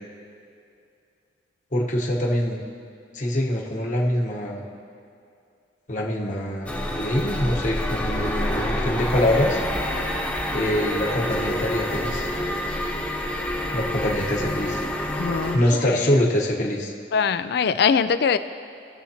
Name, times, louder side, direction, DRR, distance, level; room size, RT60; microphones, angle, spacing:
voice 1, 1.7-2.6 3.1-4.7 5.9-6.7 7.0-9.6 10.5-12.3 13.7-14.8 15.5-16.9, left 1 dB, 45° left, -2 dB, 1.2 m, -24 dB
sound 1, 6.7-15.6, left 1 dB, 10° left, 1.0 m, -27 dB
voice 2, 15.2-16.1 17.1-18.4, left 6 dB, 60° left, 12 dB, 0.4 m, -22 dB
18.5 x 7.1 x 2.9 m, 2.6 s
head